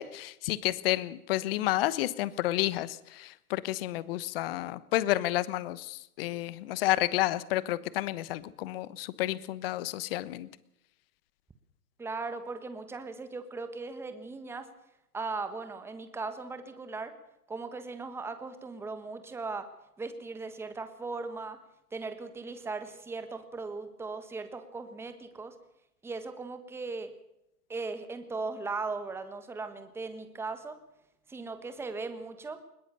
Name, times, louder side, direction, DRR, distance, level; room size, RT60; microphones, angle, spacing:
voice 1, 0.0-10.5, left 16 dB, 40° left, 18 dB, 1.1 m, -30 dB
voice 2, 12.0-14.7 15.1-17.1 17.5-19.7 20.0-21.6 21.9-25.5 26.0-27.1 27.7-30.8 31.3-32.6, right 3 dB, 5° right, 9 dB, 1.4 m, -38 dB
21.0 x 18.5 x 6.8 m, 0.84 s
hypercardioid pair, 130°, 46 cm